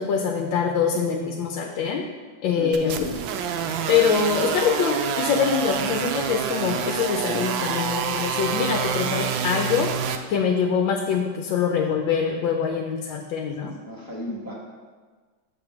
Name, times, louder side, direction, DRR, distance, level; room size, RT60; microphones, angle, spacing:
voice 1, 0.0-2.0 2.4-3.0 3.9-9.9 10.3-13.7, left 6 dB, 85° left, 2 dB, 1.4 m, -24 dB
voice 2, 2.5-3.2 13.8-14.5, left 1 dB, 15° left, -5 dB, 0.7 m, -34 dB
sound 1, 2.7-10.2, right 7 dB, 85° right, 1.3 m, -27 dB
7.6 x 3.6 x 5.8 m, 1.4 s
omnidirectional pair, 2.1 m